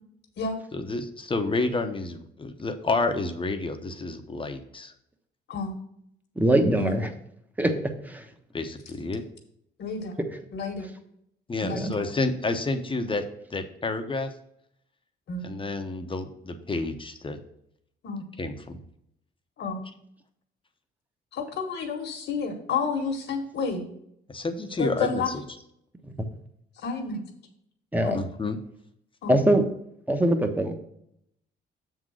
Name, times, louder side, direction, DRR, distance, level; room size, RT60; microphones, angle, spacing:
voice 1, 0.7-4.9 8.5-9.2 11.5-13.2 13.5-14.3 15.4-17.4 18.4-18.8 24.3-25.2 28.1-28.6, left 3 dB, 25° left, 7 dB, 0.9 m, -29 dB
voice 2, 6.4-7.1 7.6-8.2 11.7-11.9 26.0-26.3 27.9-28.2 29.3-29.6 30.1-30.7, right 1 dB, 10° right, 6 dB, 1.1 m, -23 dB
voice 3, 9.8-10.1 10.5-10.9 11.6-12.0 15.3-15.4 18.0-18.2 19.6-19.8 21.3-23.9 24.8-25.3 26.8-27.2 28.0-28.2 29.2-29.4, left 4 dB, 65° left, 1 dB, 1.3 m, -30 dB
7.2 x 3.8 x 6.3 m, 0.74 s
cardioid pair, 90°, 20 cm